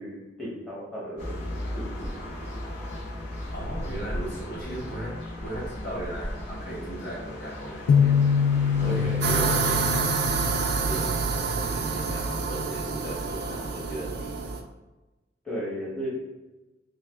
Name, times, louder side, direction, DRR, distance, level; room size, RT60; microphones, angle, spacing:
voice 1, 0.0-1.3 1.7-2.1 15.4-16.1, equal, 5° left, -8 dB, 0.8 m, -35 dB
sound 1, 1.2-9.3, left 1 dB, 65° left, 1.4 m, -36 dB
voice 2, 3.5-8.2 8.8-14.5, right 1 dB, 45° left, -5 dB, 0.9 m, -37 dB
sound 2, 7.9-11.6, left 7 dB, 85° left, 0.3 m, -24 dB
sound 3, 9.2-14.6, right 4 dB, 55° right, 0.3 m, -27 dB
3.2 x 2.3 x 3.4 m, 1.1 s
head